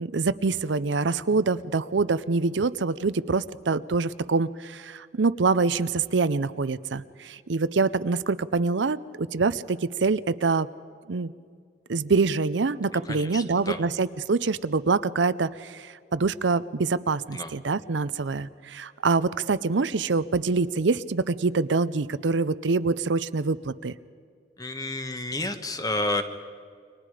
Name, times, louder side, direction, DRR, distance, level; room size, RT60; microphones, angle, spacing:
voice 1, 0.0-10.7 11.1-11.3 11.9-23.9, right 4 dB, 85° right, 15 dB, 0.6 m, -25 dB
voice 2, 12.9-13.9 17.3-17.5 24.6-26.2, left 2 dB, 20° left, 8 dB, 1.4 m, -30 dB
29.5 x 24.0 x 5.0 m, 2.2 s
head